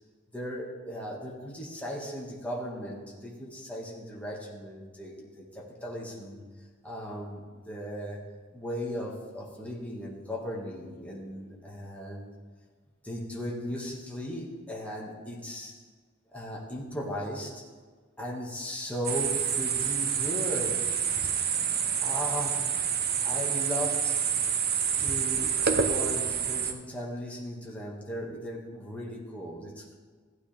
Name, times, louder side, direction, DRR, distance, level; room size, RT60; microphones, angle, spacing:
voice 1, 0.3-12.3 13.0-15.8 16.3-17.7 18.2-21.0 22.0-22.8 23.2-24.3 25.0-29.9, equal, 5° left, -3 dB, 2.0 m, -37 dB
sound 1, 19.0-26.7, right 7 dB, 50° right, 0.9 m, -28 dB
15.5 x 9.2 x 3.5 m, 1.5 s
head